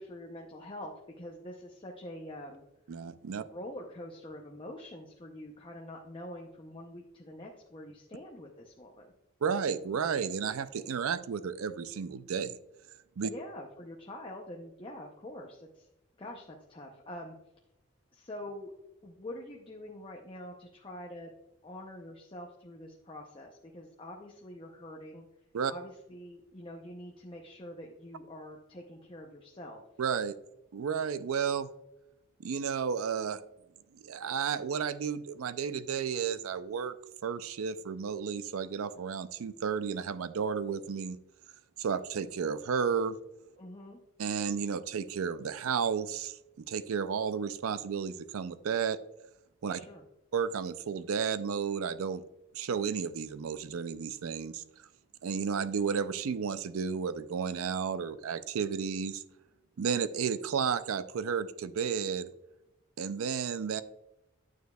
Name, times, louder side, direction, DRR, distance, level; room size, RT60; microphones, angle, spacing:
voice 1, 0.0-2.6 3.4-9.1 13.3-15.9 16.2-17.4 18.1-18.7 19.0-21.3 21.6-25.3 25.7-29.8 43.6-44.0 49.8-50.0, left 1 dB, 25° left, 0 dB, 0.6 m, -45 dB
voice 2, 2.9-3.4 9.4-12.6 13.2-13.3 25.5-25.7 30.0-30.4 30.7-31.7 32.4-33.4 33.9-36.9 37.2-41.2 41.8-43.2 44.2-46.4 46.7-49.0 49.6-49.8 50.3-52.2 52.5-54.6 55.2-59.2 59.8-62.3 63.0-63.8, right 6 dB, 80° right, 14 dB, 0.4 m, -32 dB
9.3 x 6.7 x 2.3 m, 0.90 s
head